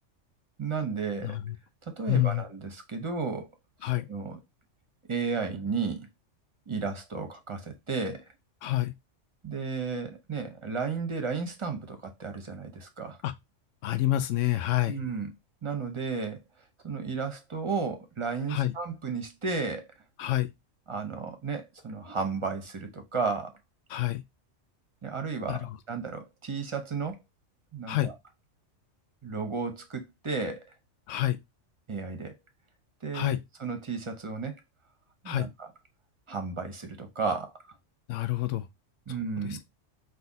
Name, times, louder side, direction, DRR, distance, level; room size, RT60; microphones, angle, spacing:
voice 1, 0.6-1.4 1.9-3.5 3.8-4.4 5.1-6.1 6.7-8.3 9.4-13.2 14.9-15.3 15.6-16.4 16.8-19.9 20.9-23.5 25.0-27.2 27.7-28.1 29.2-30.7 31.9-32.3 33.0-34.6 35.2-35.7 36.3-37.5 39.1-39.6, right 4 dB, 30° right, 0.7 m, -33 dB
voice 2, 1.2-1.6 2.1-2.4 3.8-4.1 8.6-8.9 13.2-13.3 13.8-15.0 18.5-18.7 20.2-20.5 23.9-24.2 25.5-25.7 27.9-28.1 31.1-31.4 33.1-33.4 35.3-35.5 38.1-38.7 39.4-39.6, left 15 dB, 80° left, 1.0 m, -27 dB
4.1 x 2.7 x 3.9 m
omnidirectional pair, 1.3 m